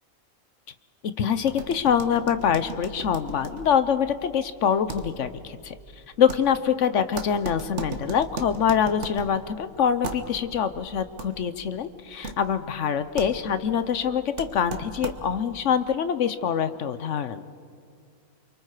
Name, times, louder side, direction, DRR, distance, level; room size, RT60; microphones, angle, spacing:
voice 1, 1.2-5.7 6.2-17.4, left 8 dB, 60° left, 12 dB, 1.0 m, -25 dB
sound 1, 1.5-15.5, right 3 dB, 55° right, 1.5 m, -39 dB
29.5 x 23.5 x 4.9 m, 2.3 s
omnidirectional pair, 1.5 m